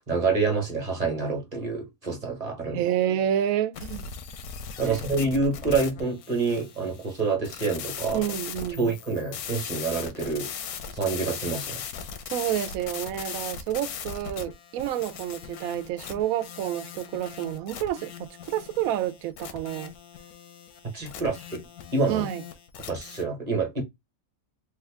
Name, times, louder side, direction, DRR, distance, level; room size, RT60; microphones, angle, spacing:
voice 1, 0.0-2.8 4.8-8.2 8.8-10.5 10.9-11.8 20.9-21.6 21.9-22.3 22.9-23.8, right 4 dB, 30° right, 1.1 m, -27 dB
voice 2, 2.7-4.1 4.8-5.0 8.1-8.9 12.3-19.9 22.1-22.4, right 11 dB, 75° right, 1.0 m, -29 dB
sound 1, 3.7-23.2, left 7 dB, 85° left, 1.1 m, -39 dB
3.4 x 2.3 x 3.4 m
omnidirectional pair, 1.6 m